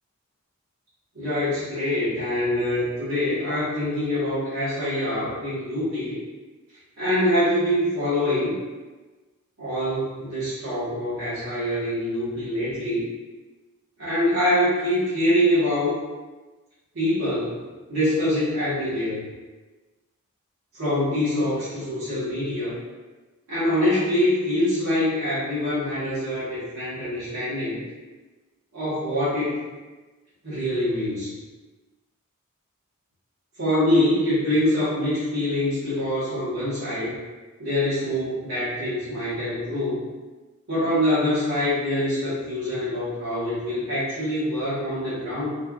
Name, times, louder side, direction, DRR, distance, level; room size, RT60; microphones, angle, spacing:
voice 1, 1.1-6.1 7.0-8.6 9.6-13.0 14.0-16.0 16.9-17.6 17.9-19.2 20.7-22.8 23.5-27.8 28.7-29.6 30.4-31.3 33.6-37.1 37.6-40.0 40.7-45.5, left 1 dB, 75° right, -12 dB, 1.2 m, -24 dB
3.3 x 2.3 x 2.3 m, 1.2 s
head